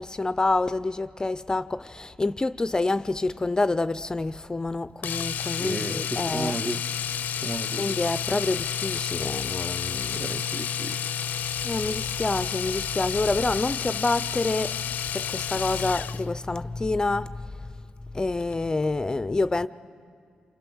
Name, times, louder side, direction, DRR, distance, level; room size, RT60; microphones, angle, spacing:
voice 1, 0.0-6.6 7.8-10.2 11.6-14.8 15.1-17.5 18.1-19.7, left 2 dB, 25° left, 0.5 m, -27 dB
Domestic sounds home sounds, 5.0-16.3 18.4-18.5 18.8-18.9, left 8 dB, 75° left, 0.5 m, -30 dB
voice 2, 5.4-6.8 7.4-7.9 10.1-11.2, right 2 dB, 25° right, 0.9 m, -34 dB
27.5 x 25.5 x 6.3 m
cardioid pair, 60°, 3 cm